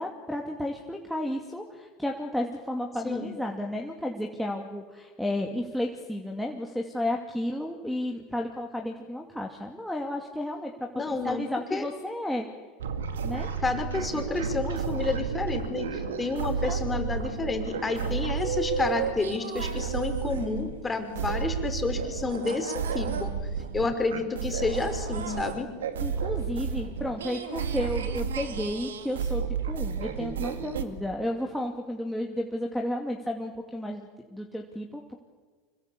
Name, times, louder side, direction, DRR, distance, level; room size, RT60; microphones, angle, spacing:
voice 1, 0.0-12.5 13.2-13.5 16.5-17.0 23.8-23.9 26.0-35.2, left 1 dB, ahead, 0 dB, 2.6 m, -32 dB
voice 2, 10.9-11.4 11.7-11.9 13.6-23.4 23.7-25.7, left 3 dB, 20° left, 5 dB, 5.1 m, -30 dB
sound 1, 12.8-20.8 21.1-30.8, right 6 dB, 80° right, 2.1 m, -32 dB
26.0 x 22.0 x 8.7 m, 1.4 s
hypercardioid pair, 85°, 0 cm